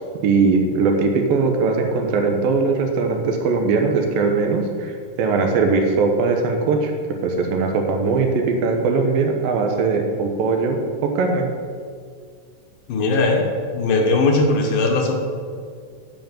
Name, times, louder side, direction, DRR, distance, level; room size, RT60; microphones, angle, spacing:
voice 1, 0.2-6.9 7.2-11.5, right 4 dB, 85° right, 3 dB, 2.8 m, -20 dB
voice 2, 12.9-15.2, left 3 dB, 70° left, 2 dB, 2.6 m, -19 dB
9.3 x 5.4 x 7.4 m, 2.1 s
omnidirectional pair, 4.0 m